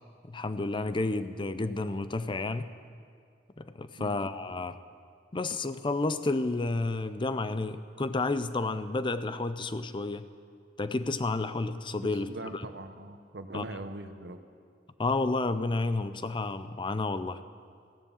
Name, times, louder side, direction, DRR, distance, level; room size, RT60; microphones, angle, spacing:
voice 1, 0.3-2.7 3.6-4.8 5.3-10.3 10.8-12.6 13.5-13.6 15.0-17.4, left 3 dB, 30° left, 12 dB, 0.5 m, -31 dB
voice 2, 12.0-14.4, right 2 dB, 70° right, 8 dB, 0.9 m, -41 dB
15.5 x 11.0 x 7.1 m, 2.2 s
head